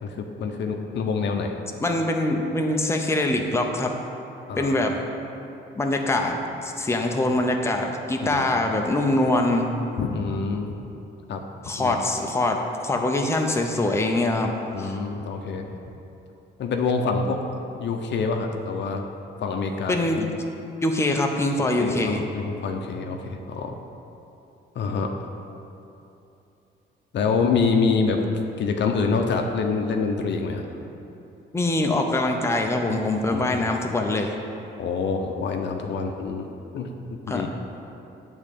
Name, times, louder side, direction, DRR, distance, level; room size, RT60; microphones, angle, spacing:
voice 1, 0.0-1.6 4.5-4.9 8.3-8.6 10.0-10.7 11.3-11.4 11.8-12.0 14.7-15.7 16.6-17.4 17.7-19.1 19.4-20.0 21.8-23.7 24.8-25.3 27.1-28.3 28.6-30.7 33.3-33.6 34.8-36.5 36.7-36.9 37.3-37.5, left 4 dB, 65° left, 4 dB, 0.7 m, -26 dB
voice 2, 1.8-3.9 4.6-4.9 5.7-9.7 11.6-14.5 14.8-15.0 19.9-20.3 20.8-22.2 31.5-34.3 37.3-37.5, left 2 dB, 15° left, 2 dB, 0.7 m, -23 dB
8.0 x 3.7 x 6.7 m, 2.8 s
cardioid pair, 90°, 20 cm